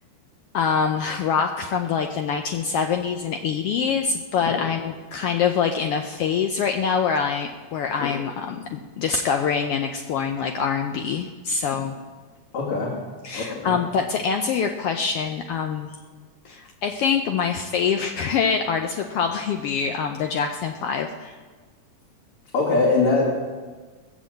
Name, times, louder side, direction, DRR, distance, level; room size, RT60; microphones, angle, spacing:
voice 1, 0.5-11.9 13.2-15.9 16.4-21.3, left 6 dB, 85° left, 4 dB, 1.3 m, -25 dB
voice 2, 12.5-12.9 13.3-13.8 22.5-23.3, left 3 dB, 65° left, -8 dB, 4.0 m, -22 dB
20.0 x 7.3 x 7.7 m, 1.4 s
omnidirectional pair, 3.5 m